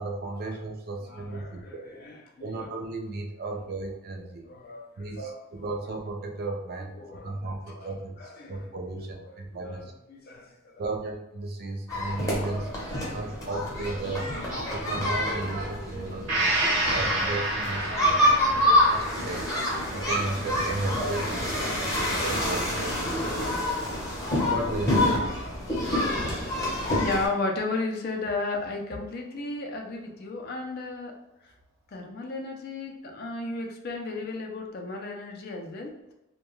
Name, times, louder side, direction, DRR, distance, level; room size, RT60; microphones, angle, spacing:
voice 1, 0.0-1.9 2.4-4.5 5.0-6.9 7.2-8.2 8.5-9.9 10.8-12.7 13.1-14.3 14.7-19.5 19.9-23.8 24.4-25.3, right 2 dB, 50° right, 3 dB, 0.4 m, -35 dB
voice 2, 1.1-2.7 4.4-4.9 5.2-5.4 6.9-7.9 8.2-8.7 9.3-10.7 11.9-12.3 13.0-13.4 27.0-31.1 31.9-36.1, left 3 dB, 50° left, 2 dB, 0.4 m, -34 dB
sound 1, 11.9-27.3, left 1 dB, 15° left, 0.7 m, -27 dB
Gong, 16.3-23.9 24.3-24.4, right 1 dB, 85° right, 0.8 m, -31 dB
2.2 x 2.2 x 3.0 m, 0.91 s
head